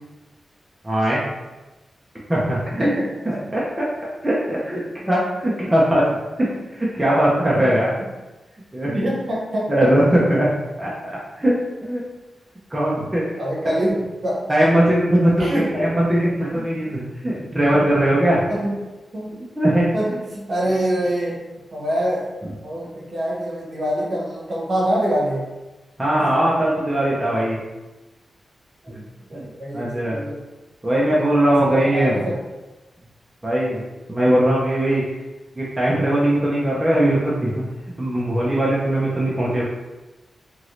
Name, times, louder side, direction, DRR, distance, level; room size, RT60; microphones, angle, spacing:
voice 1, 0.8-1.2 2.3-2.9 3.3-3.8 4.2-6.0 6.7-7.9 8.7-8.9 9.7-10.5 10.8-11.5 11.8-12.0 12.7-13.2 14.5-18.5 19.6-19.9 22.4-22.5 26.0-27.6 28.9-29.0 29.3-30.2 30.8-32.3 33.4-35.0 35.5-37.6 38.0-39.6, right 1 dB, 10° right, -7 dB, 0.5 m, -20 dB
voice 2, 8.9-9.7 10.1-10.2 13.4-14.4 15.4-15.7 16.5-16.6 17.7-17.9 18.5-18.7 19.1-19.4 19.7-21.4 21.7-25.4 26.2-26.3 28.8-28.9 29.3-30.4 31.1-31.2 31.7-32.4, right 1 dB, 45° right, -5 dB, 0.9 m, -25 dB
2.9 x 2.5 x 3.0 m, 1.1 s
wide cardioid pair, 170°, 0 cm